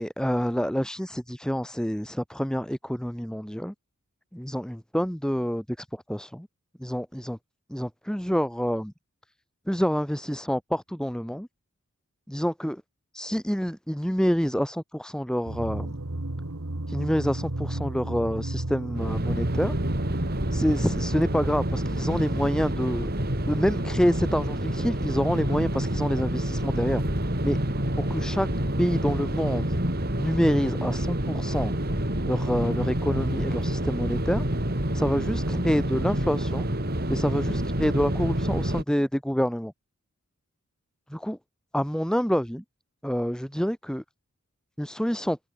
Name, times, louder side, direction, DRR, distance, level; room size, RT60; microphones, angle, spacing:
voice 1, 0.0-3.7 4.3-6.5 6.8-7.4 7.7-8.9 9.7-11.5 12.3-12.8 13.1-16.0 16.9-19.7 20.5-23.1 23.4-27.0 27.4-27.6 28.0-28.5 28.8-29.7 30.2-31.7 32.2-34.4 34.9-36.7 37.1-39.7 41.1-41.4 41.7-42.6 43.0-44.0 44.8-45.4, equal, 5° left, 2.5 m, -27 dB
sound 1, 15.5-21.8, right 1 dB, 80° right, 1.8 m, -33 dB
sound 2, 19.0-38.8, right 1 dB, 45° right, 4.5 m, -28 dB
head